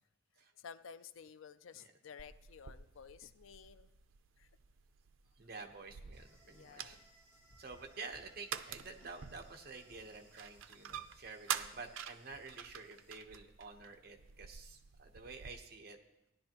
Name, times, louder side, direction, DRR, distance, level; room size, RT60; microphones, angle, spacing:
voice 1, 0.6-3.9 4.4-4.5 6.4-7.1, left 6 dB, 85° left, 13 dB, 0.5 m, -53 dB
sound 1, 2.2-15.5, right 8 dB, 80° right, 0.5 m, -48 dB
voice 2, 5.4-7.0 7.6-16.0, right 4 dB, 50° right, 3 dB, 1.0 m, -50 dB
sound 2, 5.9-6.6 6.9-11.4 11.7-12.4, equal, 40° left, 1.7 m, -65 dB
sound 3, 6.1-13.1, right 2 dB, 10° right, 4.2 m, -68 dB
16.0 x 10.5 x 3.0 m, 0.88 s
head